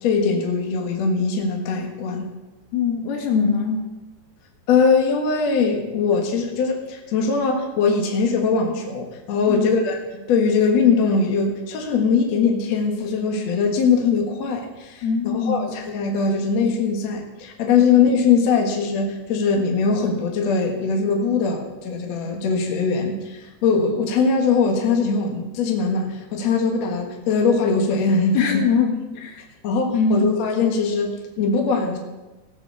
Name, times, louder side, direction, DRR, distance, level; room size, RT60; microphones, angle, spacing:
voice 1, 0.0-2.3 4.7-28.6 29.6-32.0, left 5 dB, 55° left, 1 dB, 2.2 m, -21 dB
voice 2, 2.7-3.9 9.5-9.7 15.0-15.7 28.3-29.4 29.9-30.3, left 5 dB, 70° left, 2 dB, 3.6 m, -22 dB
18.0 x 6.3 x 6.9 m, 1.1 s
omnidirectional pair, 4.7 m